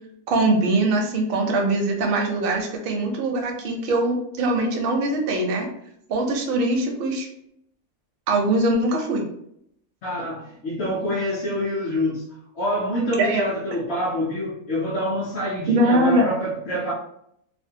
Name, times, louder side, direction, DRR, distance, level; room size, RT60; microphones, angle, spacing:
voice 1, 0.3-5.7 6.1-7.3 8.3-9.2 13.2-13.4 15.7-16.3, right 2 dB, 60° right, 2 dB, 0.6 m, -22 dB
voice 2, 10.0-12.3 12.5-16.9, equal, 60° left, -4 dB, 0.7 m, -26 dB
2.6 x 2.1 x 2.6 m, 0.73 s
omnidirectional pair, 1.5 m